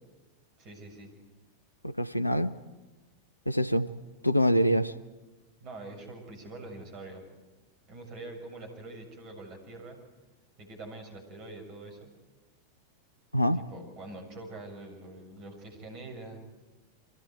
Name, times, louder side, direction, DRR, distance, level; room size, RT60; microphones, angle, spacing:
voice 1, 0.6-1.1 5.6-7.2 7.9-10.0 10.6-12.1 13.5-16.4, right 2 dB, 40° right, 6.8 m, -44 dB
voice 2, 1.8-2.5 3.5-3.9 4.2-4.9 13.3-13.6, equal, 85° left, 0.9 m, -25 dB
29.5 x 24.0 x 4.6 m
figure-of-eight pair, 90°, 0 cm